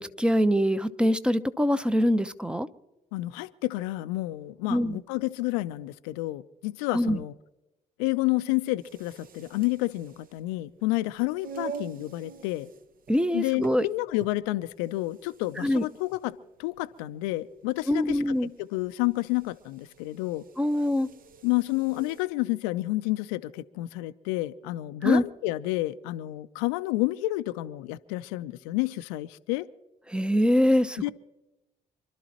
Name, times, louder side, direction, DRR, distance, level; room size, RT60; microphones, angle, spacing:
voice 1, 0.0-2.7 4.7-5.0 6.9-7.2 13.1-13.9 15.6-15.8 17.9-18.5 20.6-21.1 25.0-25.2 30.1-31.1, equal, 5° right, 0.9 m, -24 dB
voice 2, 3.1-7.3 8.0-12.7 13.3-20.4 21.4-29.7 31.0-31.1, left 19 dB, 70° left, 0.6 m, -30 dB
sound 1, 8.7-22.3, right 5 dB, 45° right, 1.1 m, -46 dB
27.0 x 12.5 x 3.0 m
figure-of-eight pair, 50°, 20 cm